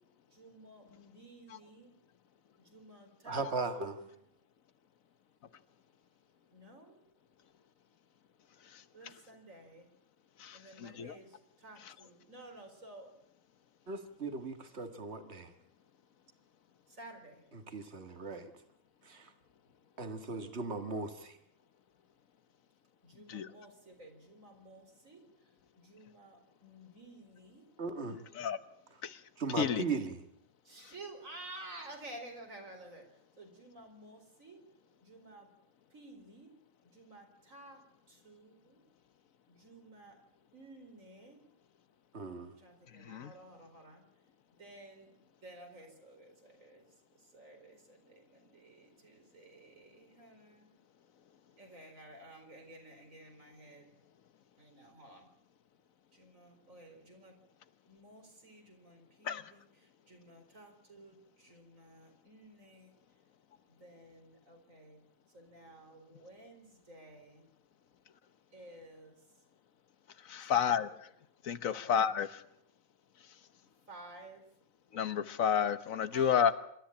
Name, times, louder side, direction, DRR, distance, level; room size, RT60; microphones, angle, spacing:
voice 1, 0.3-1.9 2.6-4.1 6.5-7.0 8.9-9.9 10.5-13.1 16.9-17.4 23.0-25.2 25.8-27.6 30.6-33.0 33.4-34.6 35.0-35.5 35.9-36.5 36.9-37.8 38.1-38.8 39.5-40.2 40.5-41.4 42.6-44.0 44.6-45.1 45.4-46.9 47.2-50.7 51.6-53.9 54.6-55.3 56.1-57.3 57.9-63.0 63.7-65.0 65.3-67.5 68.5-69.2 70.4-70.8 71.6-71.8 73.9-74.4 76.1-76.5, right 1 dB, 80° right, 3 dB, 4.8 m, -53 dB
voice 2, 3.3-4.0 13.9-15.5 17.5-18.5 19.1-19.3 20.0-21.4 27.8-28.2 29.4-30.2 42.1-42.5, right 4 dB, 55° right, 7 dB, 2.1 m, -38 dB
voice 3, 10.4-11.1 23.3-23.5 28.4-28.6 29.0-29.1 29.6-29.8 43.1-43.3 59.3-59.4 70.3-70.9 71.5-72.3 74.9-76.5, left 8 dB, 85° left, 13 dB, 1.4 m, -30 dB
26.5 x 13.5 x 8.7 m, 0.73 s
omnidirectional pair, 1.4 m